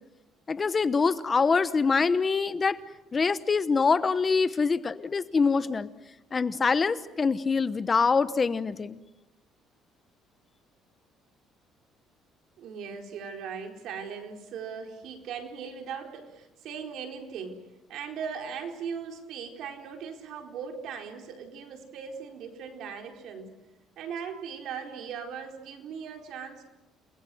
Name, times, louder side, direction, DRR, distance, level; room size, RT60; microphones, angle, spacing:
voice 1, 0.5-2.8 3.1-5.9 6.3-9.0, left 4 dB, 30° left, 14 dB, 1.0 m, -25 dB
voice 2, 12.6-17.6 17.9-23.5 24.0-26.6, right 6 dB, 70° right, 4 dB, 4.3 m, -39 dB
29.5 x 20.5 x 7.8 m, 0.98 s
cardioid pair, 115°, 0 cm